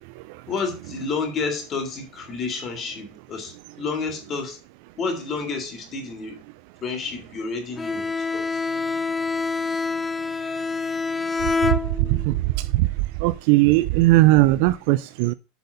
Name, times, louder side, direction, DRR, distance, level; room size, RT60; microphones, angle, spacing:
voice 1, 0.5-4.6 5.0-6.4 6.8-8.6, left 4 dB, 30° left, 2.3 m, -30 dB
Bowed string instrument, 7.8-12.4, left 4 dB, 15° left, 0.6 m, -26 dB
voice 2, 13.2-15.3, right 19 dB, 65° right, 0.4 m, -18 dB
8.0 x 4.2 x 6.6 m
supercardioid pair, 150°, 0 cm